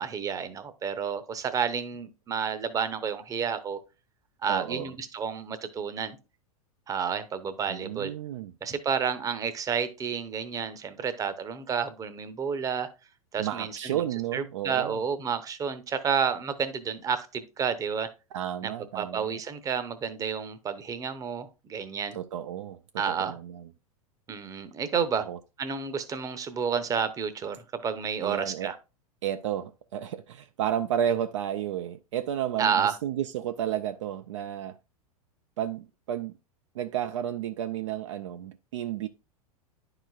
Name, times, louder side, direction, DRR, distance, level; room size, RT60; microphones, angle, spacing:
voice 1, 0.0-3.8 4.4-6.2 6.9-8.1 8.6-12.9 13.3-14.0 14.3-18.1 18.6-22.2 23.0-23.4 24.3-25.2 25.6-28.8 32.6-33.0, right 6 dB, 20° right, 0.8 m, -30 dB
voice 2, 4.5-4.9 7.7-8.5 13.4-15.0 18.3-19.4 22.1-22.8 23.1-23.6 25.3-25.4 28.2-28.7 29.2-34.8 35.6-36.3 36.7-39.1, right 10 dB, 55° right, 0.4 m, -32 dB
10.5 x 4.9 x 2.4 m
figure-of-eight pair, 95°, 19 cm